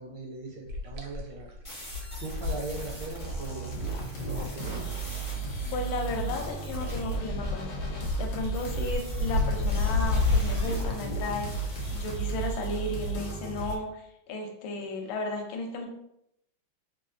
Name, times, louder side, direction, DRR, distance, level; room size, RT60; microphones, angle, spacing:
voice 1, 0.0-1.5 2.2-3.7 4.3-4.9, right 2 dB, 75° right, 1 dB, 1.1 m, -39 dB
sound 1, 0.7-5.5 5.7-10.9, left 3 dB, 90° right, 1.4 m, -31 dB
sound 2, 1.6-7.2 8.5-13.1, equal, 35° left, 0.5 m, -44 dB
sound 3, 3.2-13.8, right 4 dB, 65° left, 1.1 m, -34 dB
voice 2, 5.7-11.5 11.9-15.9, left 2 dB, 80° left, 2 dB, 1.3 m, -34 dB
3.6 x 2.4 x 2.4 m, 0.77 s
omnidirectional pair, 2.2 m